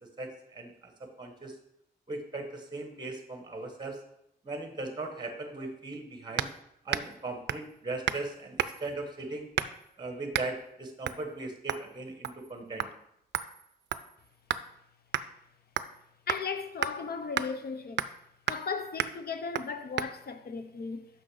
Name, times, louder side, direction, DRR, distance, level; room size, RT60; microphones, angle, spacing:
voice 1, 0.2-1.6 2.1-4.0 4.4-6.5 6.8-9.5 10.0-12.9, right 2 dB, 25° right, 1.2 m, -38 dB
sound 1, 6.4-6.6 6.9-7.2 7.5-7.7 8.1-8.3 8.6-8.9 9.6-9.9 10.3-10.5 11.0-11.2 11.7-11.9 12.2-12.5 12.8-12.9 13.3-14.7 15.1-15.3 15.8-16.0 16.3-16.4 16.8-16.9 17.4-17.5 18.0-18.2 18.5-18.7 19.0-19.2 19.5-19.7 20.0-20.1, right 9 dB, 75° right, 0.4 m, -32 dB
voice 2, 16.3-18.0 18.5-21.1, left 5 dB, 60° left, 0.7 m, -36 dB
6.2 x 6.1 x 4.9 m
wide cardioid pair, 135°, 18 cm